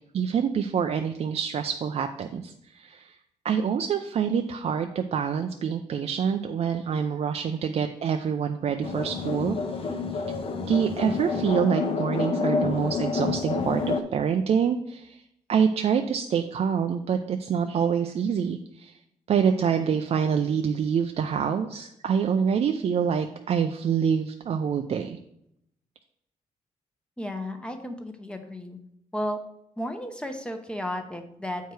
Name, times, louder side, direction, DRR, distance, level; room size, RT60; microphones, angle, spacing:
voice 1, 0.1-3.2 3.4-9.6 10.7-15.2 15.5-18.9 19.3-25.2, right 7 dB, 55° right, 6 dB, 0.5 m, -26 dB
sound 1, 8.8-14.0, left 4 dB, 50° left, 0.8 m, -28 dB
voice 2, 27.2-28.8 29.1-29.4 29.8-31.7, equal, 10° left, 5 dB, 0.8 m, -33 dB
8.0 x 4.6 x 4.7 m, 0.76 s
cardioid pair, 115°, 13 cm